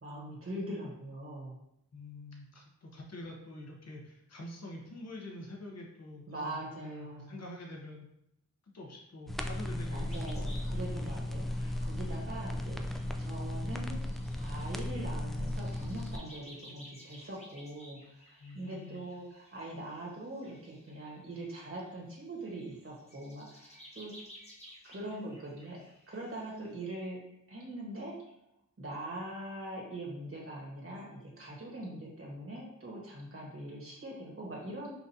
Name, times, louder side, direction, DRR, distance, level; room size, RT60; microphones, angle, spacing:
voice 1, 0.0-1.6 6.3-7.4 9.9-24.1 24.8-25.8 26.1-27.2 27.5-28.2 28.8-34.9, right 1 dB, 40° right, -3 dB, 1.4 m, -42 dB
voice 2, 1.9-8.1 8.7-10.3 18.4-19.1, left 1 dB, 50° left, 0 dB, 0.9 m, -46 dB
sound 1, 9.3-16.2, left 1 dB, ahead, 0.3 m, -36 dB
sound 2, 10.1-21.9 22.4-26.7, equal, 20° left, 1.0 m, -56 dB
5.7 x 2.5 x 2.8 m, 0.82 s
cardioid pair, 60°, 33 cm